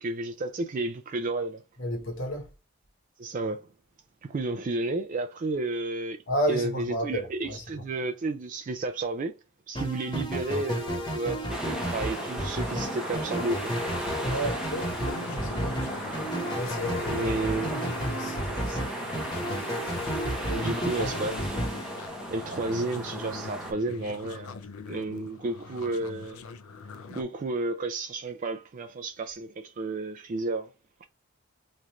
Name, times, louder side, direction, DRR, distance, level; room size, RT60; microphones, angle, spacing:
voice 1, 0.0-1.6 3.2-3.7 4.2-6.2 6.5-9.3 9.7-13.7 17.1-17.8 18.7-18.9 20.5-21.4 22.3-24.6 24.9-26.4 27.1-30.7, right 2 dB, 35° right, 0.3 m, -32 dB
voice 2, 1.8-2.5 6.3-7.6 14.2-15.8 16.5-18.8 20.5-21.3, equal, 55° left, 1.0 m, -33 dB
sound 1, 9.7-22.7, equal, 20° left, 1.0 m, -33 dB
sound 2, 11.5-23.7, right 1 dB, 5° right, 0.7 m, -36 dB
sound 3, 14.8-27.2, left 4 dB, 75° left, 0.5 m, -43 dB
3.2 x 2.4 x 4.1 m
head